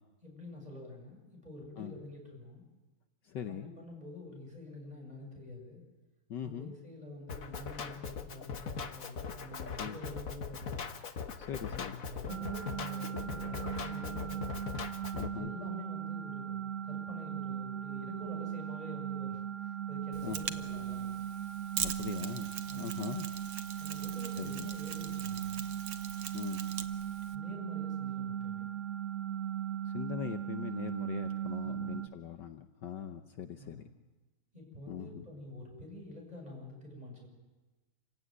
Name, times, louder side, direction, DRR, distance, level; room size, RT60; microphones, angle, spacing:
voice 1, 0.2-2.6 3.5-5.8 6.4-10.8 11.6-14.6 15.3-21.2 22.7-23.0 23.8-25.7 27.3-28.7 31.6-32.1 33.6-33.9 34.5-37.3, left 2 dB, 20° right, 0 dB, 7.5 m, -47 dB
voice 2, 3.2-3.7 6.3-6.8 9.8-10.0 11.4-12.0 15.1-15.5 20.2-20.4 21.8-22.5 22.7-23.3 24.4-24.7 26.3-26.6 29.8-33.8 34.9-35.3, left 8 dB, 65° left, 7 dB, 1.5 m, -41 dB
Drum kit, 7.3-15.3, left 6 dB, 45° left, 1.5 m, -40 dB
sound 1, 12.3-32.1, right 10 dB, 45° right, 1.3 m, -38 dB
Mechanisms, 20.1-27.4, right 9 dB, 90° right, 1.9 m, -42 dB
27.5 x 16.5 x 9.4 m, 1.2 s
omnidirectional pair, 2.2 m